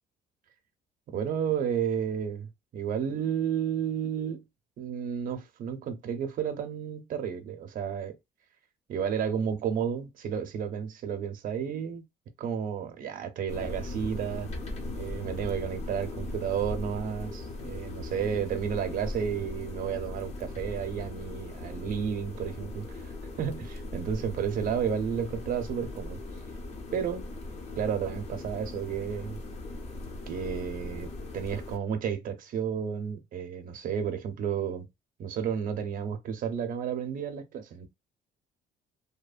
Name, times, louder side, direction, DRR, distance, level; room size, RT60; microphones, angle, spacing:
voice 1, 1.1-4.4 4.8-8.2 8.9-12.0 12.4-14.5 14.9-26.2 26.9-27.3 27.8-29.4 30.3-34.9 35.2-37.9, right 8 dB, 55° right, 0.6 m, -32 dB
sound 1, 13.5-31.8, left 2 dB, 40° left, 0.6 m, -39 dB
2.8 x 2.1 x 2.4 m
cardioid pair, 110°, 17 cm